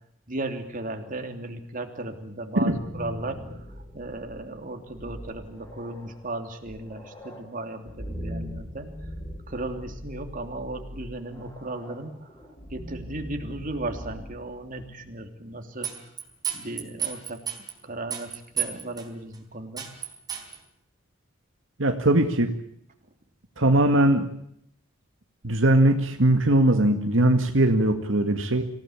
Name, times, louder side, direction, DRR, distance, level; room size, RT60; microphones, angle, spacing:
voice 1, 0.3-3.4 3.9-8.9 9.5-12.3 12.7-15.9 16.5-17.4 17.8-19.9, right 2 dB, 45° right, 5 dB, 3.2 m, -35 dB
sound 1, 2.7-15.3, equal, 20° left, 5.9 m, -41 dB
sound 2, 15.8-17.7 18.1-19.1 19.3-19.4 19.8-20.6, right 9 dB, 20° right, 4.2 m, -31 dB
voice 2, 21.8-22.5 23.6-24.3 25.4-28.7, right 1 dB, 75° right, 5 dB, 2.0 m, -20 dB
26.5 x 17.0 x 8.7 m, 0.71 s
head